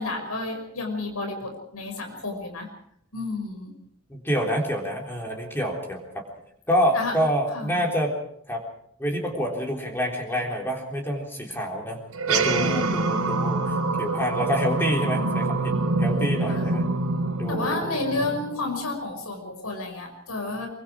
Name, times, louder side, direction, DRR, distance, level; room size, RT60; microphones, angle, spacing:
voice 1, 0.0-2.7 3.1-3.7 6.9-7.2 7.5-7.8 12.6-13.4 16.5-16.7 17.5-20.7, left 2 dB, 80° left, 3 dB, 5.7 m, -31 dB
voice 2, 4.1-6.2 6.7-8.1 8.5-8.6 9.0-12.0 12.3-15.7 16.0-16.8 17.4-18.3, equal, 10° left, 0 dB, 3.7 m, -27 dB
sound 1, 12.1-18.9, right 3 dB, 85° right, 3.6 m, -25 dB
24.0 x 24.0 x 4.8 m, 0.67 s
head